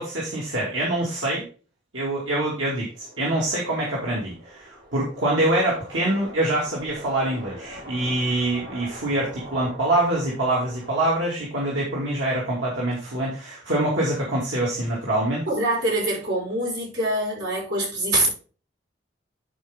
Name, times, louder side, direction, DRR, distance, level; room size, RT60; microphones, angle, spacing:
voice 1, 0.0-1.4 1.9-15.5, right 1 dB, 85° right, 2.5 m, -25 dB
sound 1, 2.9-11.2, equal, 45° right, 2.2 m, -43 dB
voice 2, 15.5-18.3, right 1 dB, 70° right, 5.2 m, -24 dB
11.0 x 4.9 x 3.6 m
head